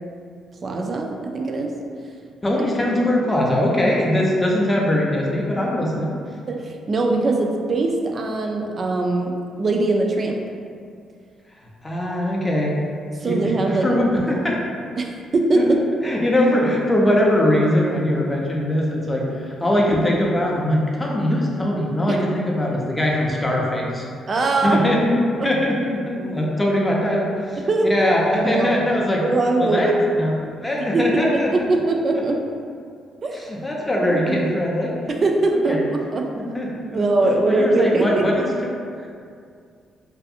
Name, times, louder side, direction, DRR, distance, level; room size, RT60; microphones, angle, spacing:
voice 1, 0.6-1.7 2.9-3.0 6.5-10.3 13.2-13.9 15.0-15.8 22.1-22.2 24.3-24.8 27.6-27.9 28.4-28.8 29.2-29.9 30.9-31.1 31.5-32.4 33.2-33.4 34.1-34.5 35.1-36.2 36.9-38.2, right 2 dB, 45° right, 2 dB, 0.3 m, -21 dB
voice 2, 2.4-6.1 11.8-12.7 13.2-14.6 15.5-15.7 16.0-24.0 24.6-29.2 29.6-30.3 30.6-31.5 33.3-34.9 35.7-35.8 36.4-38.5, left 1 dB, 15° left, -3 dB, 0.5 m, -21 dB
2.6 x 2.4 x 2.4 m, 2.3 s
cardioid pair, 90°, 0 cm